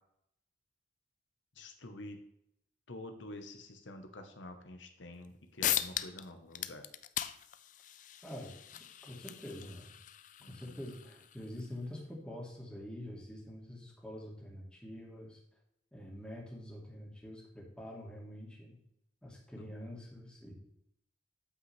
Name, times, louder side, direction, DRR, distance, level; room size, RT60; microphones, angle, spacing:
voice 1, 1.6-2.2 2.9-6.9 10.4-10.8 19.6-19.7, left 1 dB, 80° left, 6 dB, 1.0 m, -48 dB
sound 1, 5.2-5.3 5.6-6.3 6.5-11.7, left 11 dB, 40° left, 0.4 m, -39 dB
voice 2, 8.2-10.0 10.5-15.4 15.9-18.8 19.2-20.5, left 1 dB, 5° left, -2 dB, 2.1 m, -46 dB
8.7 x 8.0 x 3.3 m, 0.76 s
head